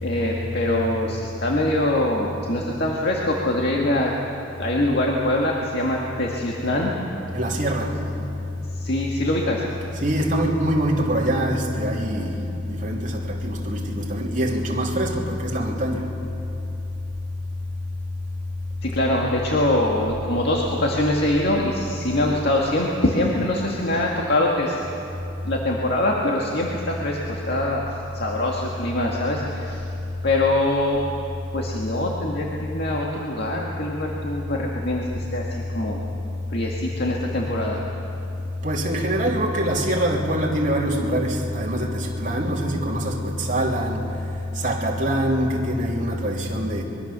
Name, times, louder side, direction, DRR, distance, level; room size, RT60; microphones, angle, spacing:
voice 1, 0.0-4.1 4.6-6.9 8.7-9.6 18.8-24.8 25.4-29.9 30.2-31.0 31.5-36.0 36.5-37.8, left 1 dB, 60° left, -2 dB, 2.0 m, -24 dB
voice 2, 7.3-8.2 10.0-12.4 12.7-16.0 38.6-44.0 44.6-46.8, equal, 45° right, -1 dB, 3.0 m, -24 dB
24.5 x 23.0 x 6.9 m, 2.8 s
head